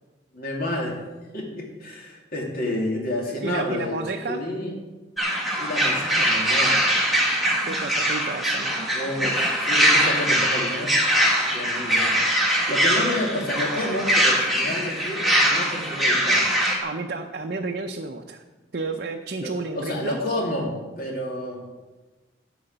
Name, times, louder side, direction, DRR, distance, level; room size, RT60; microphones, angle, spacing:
voice 1, 0.3-1.0 1.3-4.7 5.6-6.9 8.9-11.0 11.4-16.5 19.4-21.7, left 1 dB, 55° left, -1 dB, 2.5 m, -30 dB
voice 2, 3.4-4.4 7.6-8.9 16.8-18.4 18.7-20.2, right 3 dB, 55° right, 3 dB, 0.6 m, -31 dB
sound 1, 5.2-16.8, right 1 dB, ahead, 1.6 m, -22 dB
11.0 x 5.0 x 7.8 m, 1.2 s
head